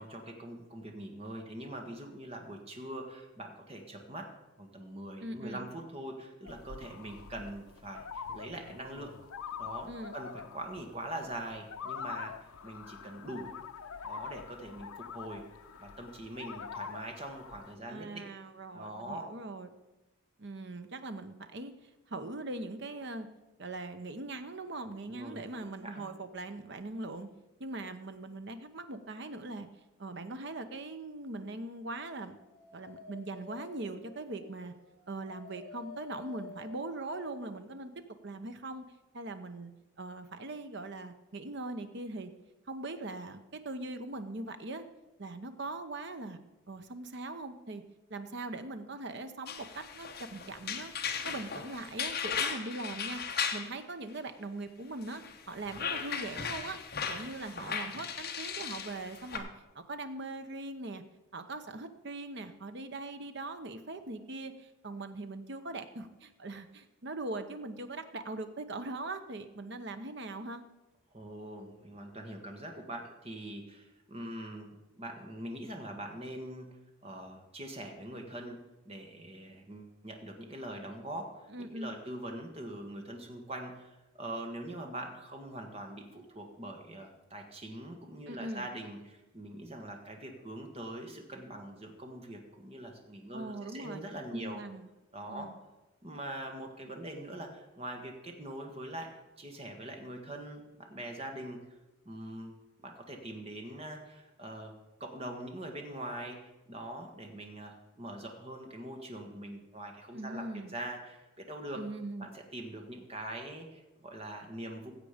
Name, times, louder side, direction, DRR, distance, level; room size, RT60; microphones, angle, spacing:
voice 1, 0.0-4.3 4.6-9.1 9.6-13.5 14.0-15.4 15.8-18.3 18.7-19.3 25.1-26.1 71.1-78.6 78.8-94.6 95.1-95.5 96.0-99.1 99.4-101.6 102.0-102.5 102.8-104.7 105.0-111.8 112.2-114.9, right 1 dB, 30° right, 3 dB, 1.4 m, -43 dB
voice 2, 5.2-5.7 9.9-10.1 17.9-19.7 20.4-23.3 23.6-27.3 27.6-29.7 30.0-32.4 32.7-34.7 35.1-37.9 38.2-38.8 39.1-39.7 40.0-42.3 42.7-44.8 45.2-46.4 46.7-47.8 48.1-50.9 51.2-53.2 53.5-56.8 57.1-59.5 59.7-61.0 61.3-70.6 81.5-81.9 88.3-88.7 93.3-94.0 94.3-94.9 95.3-95.6 110.1-110.7 111.7-112.3, right 2 dB, 55° right, 9 dB, 0.8 m, -41 dB
sound 1, 6.5-17.7, left 7 dB, 85° left, 0.6 m, -45 dB
Dog, 32.1-37.6, left 5 dB, 25° left, 5.2 m, -51 dB
sound 2, 49.5-53.7 55.1-59.4, left 6 dB, 45° left, 1.1 m, -37 dB
15.0 x 7.5 x 5.0 m, 1.0 s
head